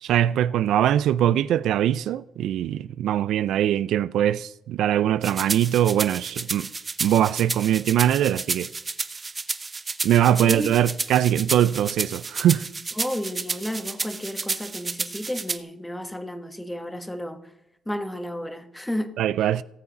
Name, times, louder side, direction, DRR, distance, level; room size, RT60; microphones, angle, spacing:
voice 1, 0.0-6.7 7.0-8.7 10.0-12.7 19.2-19.6, right 11 dB, 80° right, 0.3 m, -22 dB
sound 1, 5.2-15.6, right 4 dB, 30° right, 0.7 m, -31 dB
voice 2, 10.4-10.7 13.0-17.5 17.8-19.1, left 1 dB, 5° left, 1.2 m, -32 dB
18.0 x 7.1 x 4.1 m
cardioid pair, 90°, 0 cm